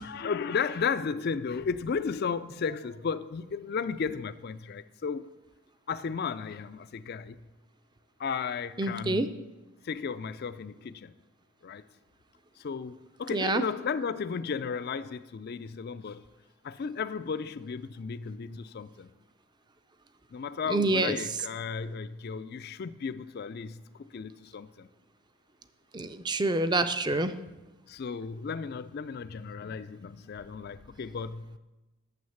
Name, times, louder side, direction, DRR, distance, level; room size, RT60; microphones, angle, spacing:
voice 1, 0.0-5.3 5.9-7.4 8.2-9.4 9.8-11.1 11.6-11.8 12.6-16.2 16.6-19.1 20.3-23.8 24.1-24.9 27.9-31.6, left 5 dB, 45° left, 0.3 m, -34 dB
voice 2, 8.8-9.3 13.3-13.6 20.7-21.2 25.9-27.3, right 2 dB, 20° right, 0.4 m, -27 dB
9.4 x 7.1 x 7.0 m
head